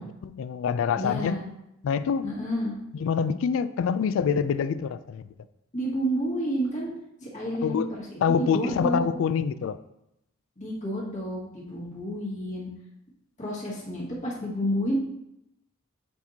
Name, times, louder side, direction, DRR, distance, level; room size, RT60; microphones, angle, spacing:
voice 1, 0.0-1.4 1.8-2.3 2.9-5.3 7.6-7.9 8.2-9.8, left 6 dB, 70° left, 15 dB, 0.3 m, -26 dB
voice 2, 1.0-1.4 2.2-2.8 5.7-6.9 7.2-9.1 10.6-12.7 13.4-15.0, equal, 35° left, -6 dB, 1.7 m, -30 dB
8.0 x 4.4 x 2.8 m, 0.84 s
head